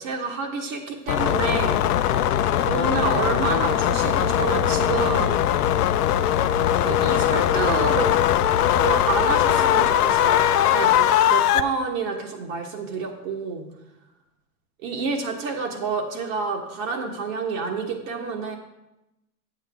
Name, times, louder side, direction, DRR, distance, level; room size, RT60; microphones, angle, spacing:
voice 1, 0.0-1.9 2.6-5.4 6.8-8.2 8.7-13.7 14.8-18.6, right 4 dB, 60° right, 1 dB, 1.5 m, -28 dB
sound 1, 1.1-11.6, left 11 dB, 80° left, 0.6 m, -20 dB
8.4 x 8.2 x 3.6 m, 0.92 s
hypercardioid pair, 110°, 45 cm